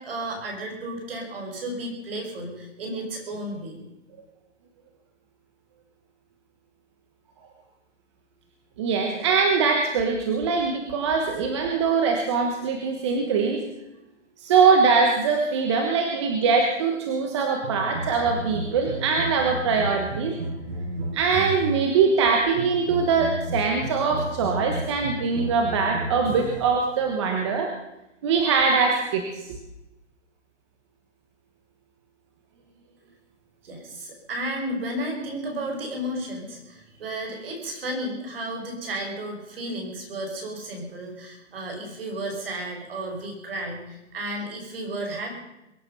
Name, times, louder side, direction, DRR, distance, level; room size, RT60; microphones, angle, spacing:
voice 1, 0.0-3.8 33.6-45.4, right 1 dB, 50° right, 2 dB, 5.9 m, -33 dB
voice 2, 8.8-13.6 14.4-20.3 21.1-27.7 28.2-29.5, right 5 dB, 25° right, 3 dB, 1.3 m, -22 dB
sound 1, 17.6-21.9 22.5-26.8, right 1 dB, 90° right, 6.4 m, -33 dB
22.5 x 10.5 x 5.7 m, 0.91 s
hypercardioid pair, 170°, 37 cm